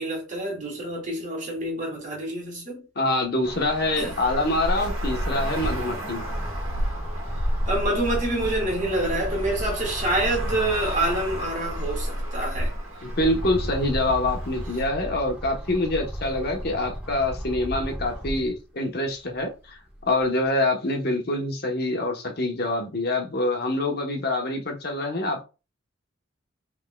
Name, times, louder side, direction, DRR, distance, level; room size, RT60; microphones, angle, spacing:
voice 1, 0.0-2.9 4.0-4.2 7.6-12.7, right 1 dB, 40° right, 2.3 m, -27 dB
voice 2, 3.0-6.3 13.0-19.8 20.1-25.4, left 2 dB, 50° left, 1.1 m, -25 dB
Traffic noise roadway noise, 3.4-14.8, equal, 75° right, 1.6 m, -31 dB
sound 1, 4.2-11.6 12.1-18.6 19.1-20.3, equal, 5° right, 1.4 m, -35 dB
5.4 x 3.6 x 2.3 m
head